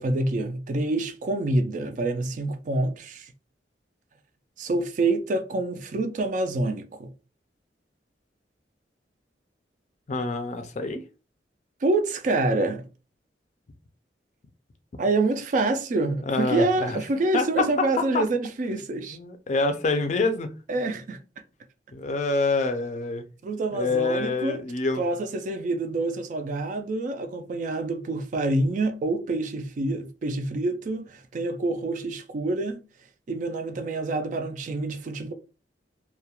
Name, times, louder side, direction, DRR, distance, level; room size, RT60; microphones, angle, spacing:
voice 1, 0.0-3.3 4.6-7.1 11.8-12.8 15.0-19.2 20.7-21.2 23.4-24.6 25.0-32.8 33.3-35.3, right 2 dB, 45° right, 0.3 m, -27 dB
voice 2, 10.1-11.0 16.3-17.0 17.3-17.9 18.1-18.2 19.1-20.5 21.9-23.2 23.7-25.0, left 3 dB, 40° left, 0.4 m, -26 dB
2.3 x 2.1 x 2.9 m
head